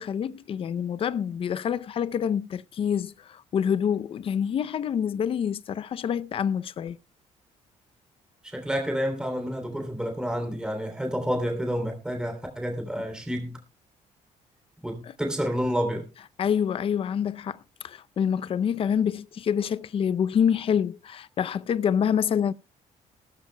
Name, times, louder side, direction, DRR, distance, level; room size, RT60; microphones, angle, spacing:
voice 1, 0.0-7.0 16.4-22.5, left 8 dB, 45° left, 0.6 m, -27 dB
voice 2, 8.4-13.6 14.8-16.1, equal, 5° right, 3.1 m, -29 dB
19.0 x 13.5 x 2.2 m
cardioid pair, 120°, 13 cm